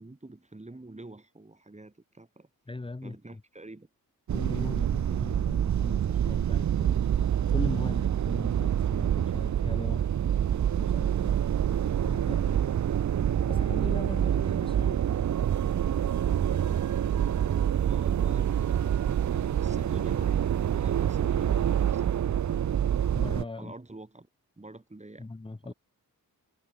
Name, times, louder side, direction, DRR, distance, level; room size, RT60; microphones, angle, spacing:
voice 1, 0.0-2.5 3.0-3.9 12.4-12.7 17.6-18.9 19.6-20.4 20.7-22.0 23.6-24.3 24.6-25.3 25.6-25.7, right 2 dB, 20° right, 4.1 m, -46 dB
voice 2, 2.7-3.4 4.3-10.1 10.8-11.4 12.0-12.5 13.5-15.0 23.1-23.7 25.2-25.7, left 2 dB, 15° left, 0.9 m, -39 dB
sound 1, 4.3-23.4, right 9 dB, 50° right, 0.5 m, -26 dB
wide cardioid pair, 140°, 37 cm